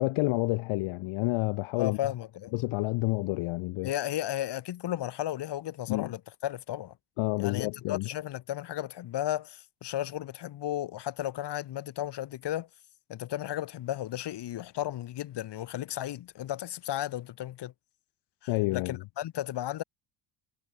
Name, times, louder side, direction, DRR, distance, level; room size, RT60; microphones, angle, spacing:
voice 1, 0.0-2.0 2.5-3.9 5.9-6.1 7.2-8.1 18.5-19.0, left 21 dB, 85° left, 2.7 m, -29 dB
voice 2, 1.8-2.5 3.8-6.9 7.4-12.7 13.1-17.7 18.4-19.8, left 13 dB, 55° left, 6.7 m, -34 dB
cardioid pair, 140°, 48 cm